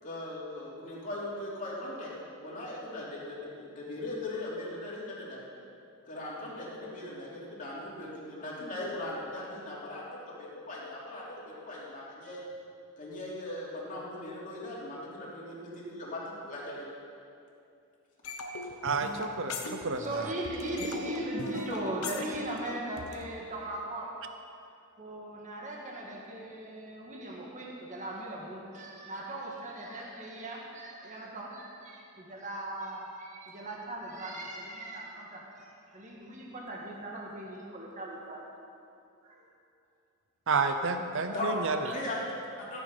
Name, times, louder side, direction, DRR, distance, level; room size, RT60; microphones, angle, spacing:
voice 1, 0.0-2.1 2.4-5.4 6.1-10.1 10.4-12.5 13.0-16.8 29.0-29.1 41.3-41.5 41.9-42.2 42.7-42.8, left 1 dB, 35° left, -6 dB, 3.0 m, -39 dB
sound 1, 18.2-20.2 20.4-23.2, left 3 dB, 70° left, 1.1 m, -39 dB
voice 2, 18.8-20.3 20.8-20.9 40.5-41.9, right 4 dB, 60° right, 7 dB, 0.6 m, -30 dB
voice 3, 20.0-24.2 25.0-38.4 39.2-39.4, right 1 dB, 35° right, -2 dB, 1.6 m, -39 dB
14.0 x 8.7 x 5.5 m, 2.5 s
head